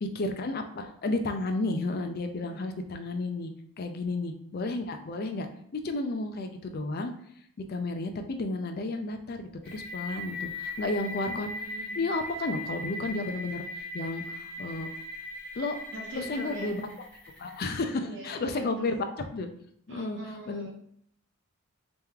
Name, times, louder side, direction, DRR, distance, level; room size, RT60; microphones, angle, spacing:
voice 1, 0.0-3.5 3.8-5.5 5.7-7.1 7.7-11.5 12.0-14.9 15.6-15.8 16.1-16.9 17.4-19.0 19.3-19.5 19.9-20.2 20.5-20.7, left 2 dB, 45° left, 6 dB, 0.4 m, -32 dB
voice 2, 2.4-2.8 11.2-12.1 15.9-16.7 18.0-19.0 19.9-20.7, right 1 dB, 55° right, -1 dB, 1.1 m, -43 dB
sound 1, 9.6-17.6, left 1 dB, 5° left, 1.2 m, -39 dB
3.4 x 3.0 x 3.6 m, 0.69 s
head